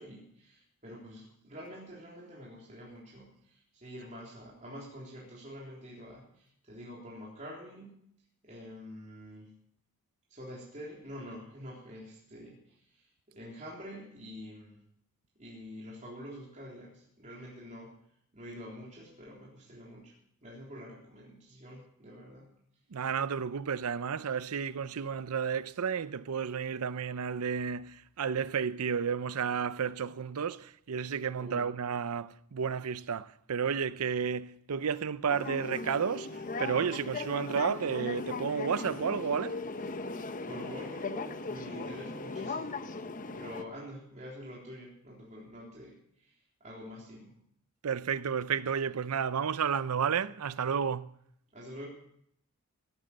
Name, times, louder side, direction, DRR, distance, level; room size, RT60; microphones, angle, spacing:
voice 1, 0.0-8.1 8.4-9.5 10.3-14.8 15.4-18.0 18.3-20.1 20.4-22.5 31.4-31.7 40.4-42.8 43.3-46.3 46.6-47.3 51.5-51.9, equal, 35° right, 3.6 m, -47 dB
voice 2, 22.9-39.6 47.8-51.1, right 6 dB, 80° right, 0.6 m, -32 dB
sound 1, 35.3-43.6, left 3 dB, 40° left, 0.8 m, -38 dB
17.5 x 9.1 x 6.7 m
head